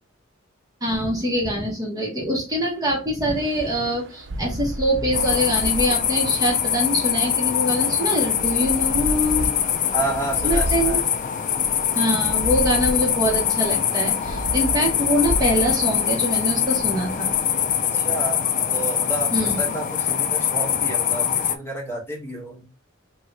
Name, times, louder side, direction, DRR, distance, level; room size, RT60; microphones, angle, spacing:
voice 1, 0.8-9.5 10.4-11.0 11.9-17.3 19.3-19.6, equal, 20° right, -2 dB, 0.9 m, -24 dB
sound 1, 3.3-17.9, right 1 dB, 60° right, 0.5 m, -34 dB
sound 2, 5.1-21.6, left 9 dB, 40° left, 0.3 m, -23 dB
voice 2, 9.9-11.0 17.9-18.5 18.7-22.7, right 2 dB, 10° left, -3 dB, 1.0 m, -30 dB
2.8 x 2.7 x 3.1 m, 0.29 s
head